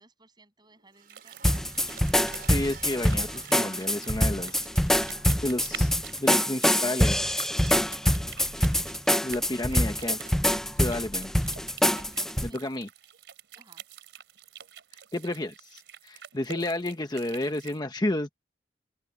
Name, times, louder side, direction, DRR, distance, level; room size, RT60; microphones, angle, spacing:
voice 1, 0.0-1.5 12.5-12.6 13.5-13.8, right 2 dB, 25° right, 7.4 m, -60 dB
sound 1, 0.6-11.4, right 6 dB, 55° right, 6.6 m, -53 dB
sound 2, 1.1-17.8, right 8 dB, 90° right, 3.1 m, -46 dB
sound 3, 1.4-12.5, equal, 5° left, 0.5 m, -25 dB
voice 2, 2.5-4.7 5.4-5.9 6.2-7.5 9.2-10.2 10.8-11.3 12.4-12.9 15.1-18.3, left 1 dB, 25° left, 1.0 m, -31 dB
open air
head